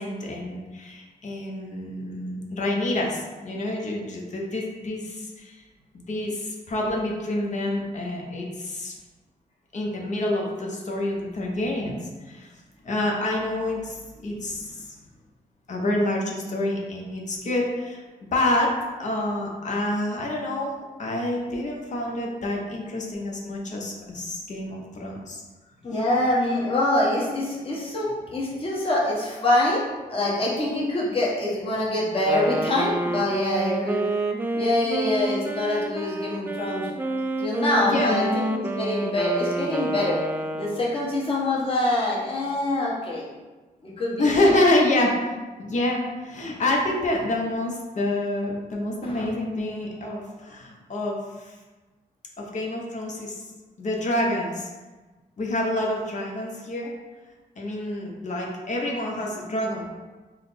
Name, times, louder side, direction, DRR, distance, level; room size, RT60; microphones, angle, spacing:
voice 1, 0.0-5.6 5.9-9.0 9.7-12.0 12.2-12.5 12.8-14.9 15.7-18.0 18.3-18.7 19.0-25.4 37.8-38.2 44.2-51.5 52.4-53.3 53.8-54.7 55.4-56.9 57.6-59.8, left 1 dB, 50° left, -1 dB, 0.8 m, -27 dB
voice 2, 25.8-34.0 34.5-36.9 37.4-40.2 40.5-43.2 43.8-44.5 49.0-49.3, left 1 dB, 35° left, -5 dB, 1.1 m, -25 dB
Wind instrument woodwind instrument, 32.1-41.1, right 1 dB, 15° right, 0.3 m, -29 dB
3.8 x 2.1 x 4.1 m, 1.3 s
cardioid pair, 85°, 15 cm